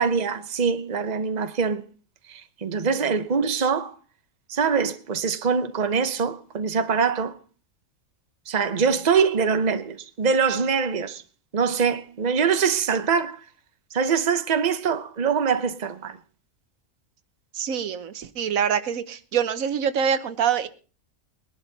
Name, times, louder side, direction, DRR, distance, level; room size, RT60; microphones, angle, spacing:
voice 1, 0.0-1.8 2.3-3.9 4.5-7.3 8.5-11.2 11.5-13.4 13.9-16.2, right 6 dB, 35° right, 0.9 m, -23 dB
voice 2, 17.5-20.7, right 8 dB, 90° right, 1.3 m, -25 dB
20.5 x 11.5 x 4.0 m
omnidirectional pair, 1.4 m